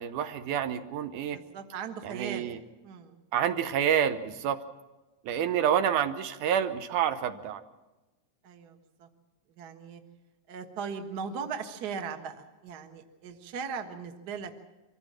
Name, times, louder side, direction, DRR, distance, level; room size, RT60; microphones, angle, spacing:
voice 1, 0.0-1.4 2.0-2.6 3.3-4.6 5.3-7.6, right 9 dB, 75° right, 10 dB, 2.4 m, -28 dB
voice 2, 1.3-2.5 2.8-3.2 8.4-9.1 9.5-10.0 10.5-14.6, right 6 dB, 45° right, 6 dB, 1.4 m, -38 dB
24.5 x 15.0 x 7.5 m, 1.1 s
omnidirectional pair, 3.7 m